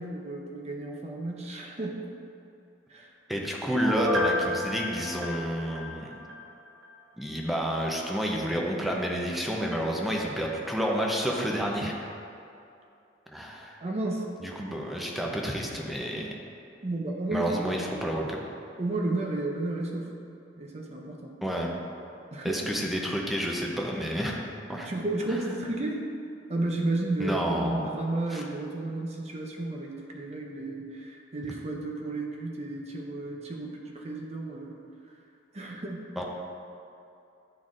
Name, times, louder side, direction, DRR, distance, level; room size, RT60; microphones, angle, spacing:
voice 1, 0.0-2.1 2.9-3.1 13.8-14.3 16.8-17.7 18.8-20.2 20.6-21.4 22.3-22.8 24.7-26.1 26.5-34.7 35.5-36.1, right 2 dB, 35° right, 0 dB, 0.8 m, -32 dB
voice 2, 3.3-6.2 7.2-11.9 13.3-13.8 14.4-16.3 17.3-18.4 21.4-21.8 22.4-24.4 24.7-24.9 25.3-25.4 27.2-27.9 28.3-28.4 36.2-36.3, equal, ahead, -2 dB, 0.6 m, -30 dB
Piano, 3.7-6.4 6.8-6.9, left 1 dB, 75° right, 0.7 m, -30 dB
10.5 x 4.0 x 2.5 m, 2.7 s
head